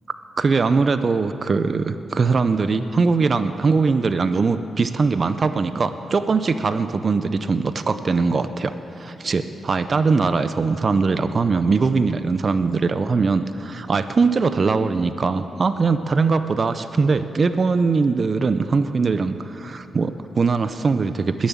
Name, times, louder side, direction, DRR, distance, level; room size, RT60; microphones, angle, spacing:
voice 1, 0.4-21.5, right 4 dB, 50° right, 11 dB, 0.6 m, -21 dB
20.5 x 7.2 x 7.2 m, 2.9 s
supercardioid pair, 50°, 0 cm